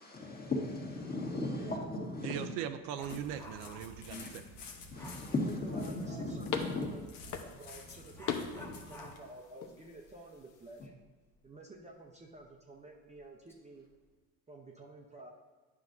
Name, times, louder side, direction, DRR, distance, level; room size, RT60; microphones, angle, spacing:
voice 1, 0.0-2.5 3.1-3.2 4.1-4.3 4.9-6.9 8.5-8.7, left 2 dB, 20° left, -1 dB, 1.7 m, -37 dB
voice 2, 2.2-4.4, right 9 dB, 70° right, 9 dB, 0.6 m, -39 dB
Dog, 2.6-4.1 4.9-5.3 7.3-7.4 8.1-11.4 11.8-11.9 12.4-12.5 13.1-13.6 13.9-14.2, left 1 dB, 5° left, 1.0 m, -54 dB
sound 1, 3.0-9.1, left 3 dB, 70° left, 1.3 m, -51 dB
sound 2, 3.2-10.9, left 6 dB, 45° left, 1.0 m, -44 dB
voice 3, 5.3-10.9 11.4-13.9 14.5-15.3, right 2 dB, 15° right, -1 dB, 0.8 m, -51 dB
9.6 x 5.8 x 2.6 m, 1.4 s
supercardioid pair, 90°, 41 cm